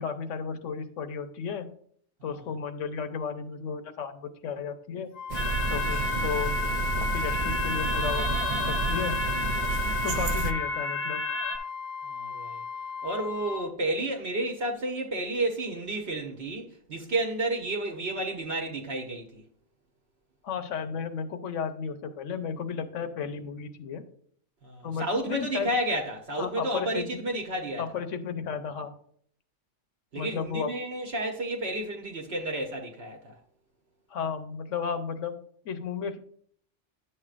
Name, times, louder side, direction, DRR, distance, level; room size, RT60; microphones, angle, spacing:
voice 1, 0.0-1.7 2.2-5.1 5.7-6.5 7.0-9.2 10.0-11.2 20.4-24.0 24.8-25.7 26.4-27.2 27.8-28.9 30.1-30.7 34.1-35.4 35.6-36.2, left 6 dB, 80° left, 1.1 m, -33 dB
Wind instrument woodwind instrument, 5.1-13.7, left 6 dB, 60° left, 0.9 m, -35 dB
sound 1, 5.3-11.6, left 2 dB, 15° left, 0.7 m, -32 dB
sound 2, 5.3-10.5, right 5 dB, 85° right, 0.3 m, -31 dB
voice 2, 12.1-12.6 13.0-19.4 24.6-27.8 30.1-33.4, right 1 dB, 60° right, 1.1 m, -31 dB
10.0 x 6.7 x 2.4 m
omnidirectional pair, 1.3 m